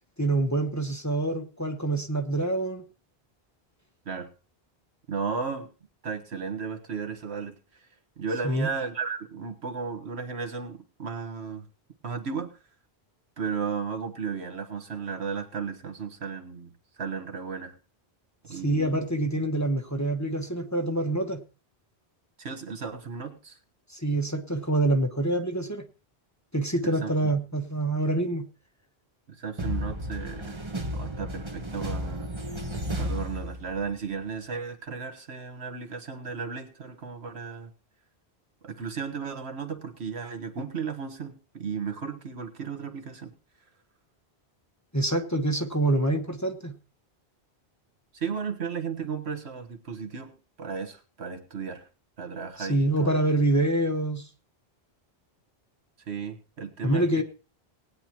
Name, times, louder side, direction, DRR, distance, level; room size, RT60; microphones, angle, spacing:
voice 1, 0.2-2.8 8.4-8.7 18.5-21.4 23.9-25.8 26.5-28.5 44.9-46.7 52.6-54.3 56.8-57.2, right 2 dB, 15° left, 4 dB, 1.2 m, -26 dB
voice 2, 5.1-5.7 6.0-7.9 8.2-11.7 12.0-12.6 13.4-17.8 18.4-19.0 22.4-23.6 26.8-27.1 29.3-30.6 30.9-32.3 33.0-37.7 38.6-43.3 48.1-51.9 52.2-53.2 56.1-57.2, right 5 dB, 80° right, 6 dB, 1.6 m, -34 dB
sound 1, 29.6-34.1, equal, 30° right, 1.1 m, -33 dB
19.0 x 10.0 x 3.0 m, 0.34 s
omnidirectional pair, 1.1 m